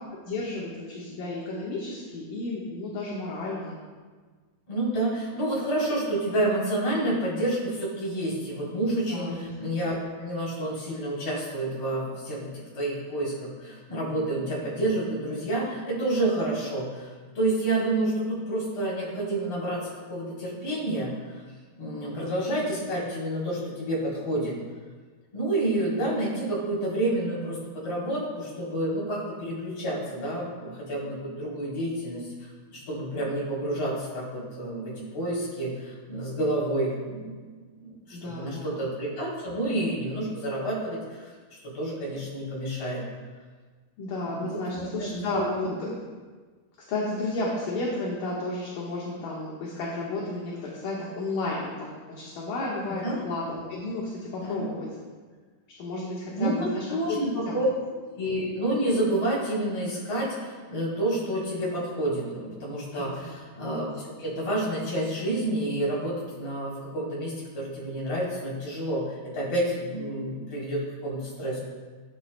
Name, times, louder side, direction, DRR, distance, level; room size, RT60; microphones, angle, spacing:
voice 1, 0.3-3.8 9.1-9.5 22.0-22.3 38.1-38.8 44.0-46.0 46.9-54.9 55.8-57.2 57.5-57.6 62.9-63.4, left 2 dB, 65° left, -5 dB, 3.2 m, -32 dB
voice 2, 4.7-21.4 21.8-24.5 25.3-41.3 41.6-43.0 44.3-45.4 52.9-53.2 54.4-54.6 56.4-57.7 58.2-71.6, right 1 dB, 40° left, -6 dB, 5.1 m, -29 dB
20.0 x 9.8 x 2.4 m, 1.5 s
omnidirectional pair, 4.5 m